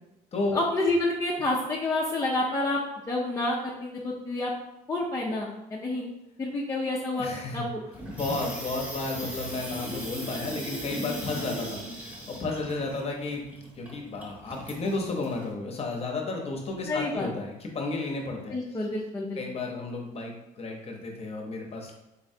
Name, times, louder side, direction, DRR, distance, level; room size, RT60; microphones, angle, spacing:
voice 1, 0.5-2.8 3.1-4.5 4.9-6.1 6.4-7.3 7.5-7.8 16.8-17.3 18.5-19.4, left 2 dB, 20° left, -4 dB, 0.5 m, -28 dB
voice 2, 7.1-7.6 8.1-13.4 13.8-18.6 19.4-21.9, left 3 dB, 35° left, 1 dB, 0.8 m, -32 dB
Water tap faucet / Sink (filling or washing), 7.9-15.5, right 1 dB, 10° right, 1.0 m, -38 dB
3.9 x 3.1 x 2.7 m, 0.91 s
cardioid pair, 110°, 17 cm